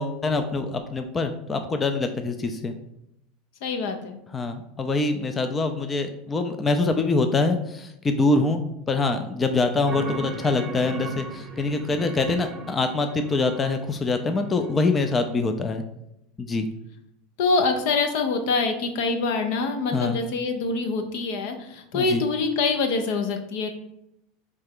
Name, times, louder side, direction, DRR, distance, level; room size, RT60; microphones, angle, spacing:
voice 1, 0.0-2.7 4.3-15.8 16.4-16.7 19.9-20.2 21.9-22.2, left 3 dB, 25° left, 6 dB, 0.4 m, -24 dB
voice 2, 3.6-4.2 17.4-23.8, left 4 dB, 70° left, 5 dB, 0.6 m, -25 dB
sound 1, 9.9-15.4, right 3 dB, 25° right, 0.8 m, -38 dB
3.7 x 3.3 x 3.6 m, 0.80 s
hypercardioid pair, 95°, 0 cm